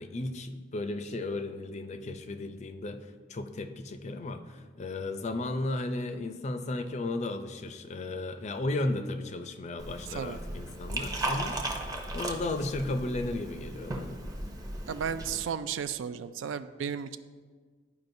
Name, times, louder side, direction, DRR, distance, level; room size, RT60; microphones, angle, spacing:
voice 1, 0.0-11.8 12.1-14.2, left 2 dB, 35° left, 8 dB, 0.4 m, -34 dB
Liquid, 9.8-15.4, right 1 dB, 20° right, 0.6 m, -36 dB
voice 2, 14.9-17.2, right 7 dB, 90° right, 12 dB, 0.3 m, -34 dB
12.0 x 4.8 x 2.6 m, 1.5 s
head